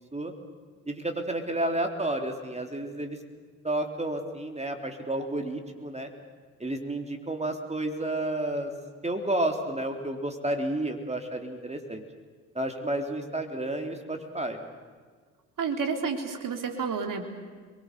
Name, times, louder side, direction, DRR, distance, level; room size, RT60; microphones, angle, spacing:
voice 1, 0.9-3.2 3.6-6.1 6.6-8.7 9.0-12.0 12.6-14.6, right 1 dB, 15° right, 4 dB, 3.5 m, -31 dB
voice 2, 15.6-17.3, right 5 dB, 50° right, 5 dB, 3.5 m, -30 dB
30.0 x 22.5 x 6.9 m, 1.5 s
hypercardioid pair, 50°, 42 cm